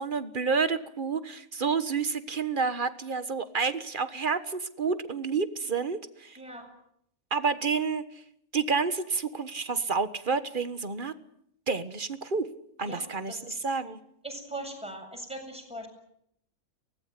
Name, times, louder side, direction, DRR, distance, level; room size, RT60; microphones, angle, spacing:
voice 1, 0.0-6.4 7.3-8.0 8.5-11.1 11.7-12.5 12.8-14.0, right 5 dB, 35° right, 11 dB, 1.5 m, -29 dB
voice 2, 12.8-13.6 14.2-15.9, right 1 dB, 5° right, 2 dB, 7.8 m, -40 dB
24.0 x 19.0 x 9.7 m, 0.72 s
omnidirectional pair, 1.5 m